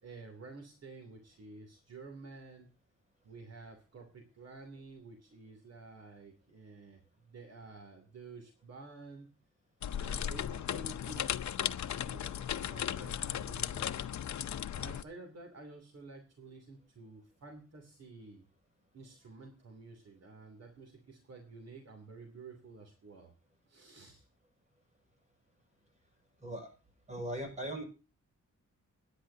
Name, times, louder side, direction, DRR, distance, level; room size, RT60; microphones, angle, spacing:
voice 1, 0.0-2.7 3.2-9.3 10.0-14.1 14.8-18.5 18.9-23.3 23.7-24.3, right 3 dB, 60° right, 3 dB, 3.0 m, -51 dB
sound 1, 9.8-15.0, left 10 dB, 75° left, 0.7 m, -36 dB
voice 2, 27.1-27.8, right 1 dB, 25° right, 3 dB, 6.4 m, -39 dB
26.0 x 10.0 x 2.8 m, 0.34 s
wide cardioid pair, 175°, 29 cm